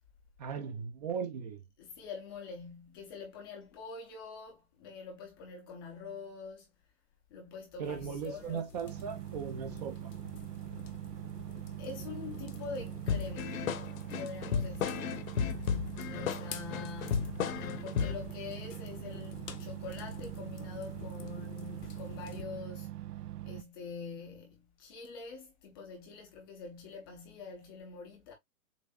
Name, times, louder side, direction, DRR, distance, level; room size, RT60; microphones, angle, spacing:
voice 1, 0.4-1.6 7.8-10.1, right 6 dB, 25° right, 0.6 m, -38 dB
voice 2, 1.8-6.7 7.3-8.6 11.8-13.7 14.2-15.3 16.1-23.1 23.5-28.3, left 5 dB, 15° left, 0.5 m, -45 dB
sound 1, 7.8-22.4, left 5 dB, 85° left, 1.2 m, -49 dB
sound 2, 8.8-23.6, right 14 dB, 85° right, 0.6 m, -43 dB
sound 3, 13.1-18.3, left 7 dB, 60° left, 1.0 m, -34 dB
7.2 x 2.6 x 2.4 m
hypercardioid pair, 145°, 47 cm